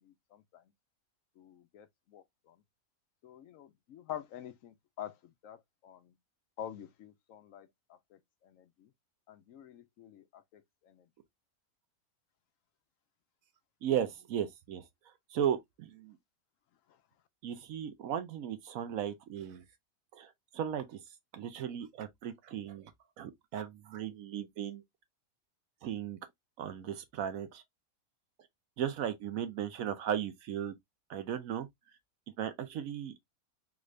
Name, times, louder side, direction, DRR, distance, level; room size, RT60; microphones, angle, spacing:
voice 1, 0.3-0.6 1.4-2.5 3.2-5.2 5.4-5.6 5.8-6.1 6.6-8.0 8.4-8.9 9.3-10.6 10.9-11.0, left 10 dB, 70° left, 0.9 m, -47 dB
voice 2, 13.8-14.8 15.3-16.2 17.4-19.6 20.1-21.0 21.3-22.9 23.2-24.8 25.8-26.2 26.6-27.6 28.8-30.7 31.1-31.7 32.4-33.1, right 9 dB, 70° right, 1.1 m, -36 dB
3.6 x 2.5 x 3.0 m
omnidirectional pair, 1.5 m